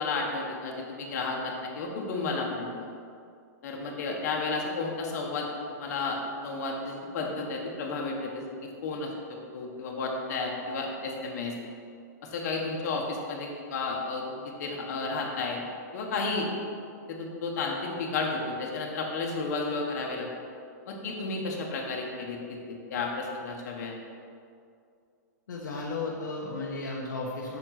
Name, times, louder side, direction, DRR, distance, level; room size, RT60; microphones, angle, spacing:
voice 1, 0.0-2.9 3.6-5.5 5.8-8.4 8.8-9.1 9.5-11.5 12.3-14.2 14.6-15.6 15.9-16.5 17.1-20.3 20.9-22.4 22.7-24.0, left 3 dB, 60° left, 0 dB, 1.3 m, -32 dB
voice 2, 25.5-27.6, left 3 dB, 85° left, -2 dB, 1.1 m, -34 dB
6.3 x 4.5 x 5.8 m, 2.4 s
hypercardioid pair, 130°, 10 cm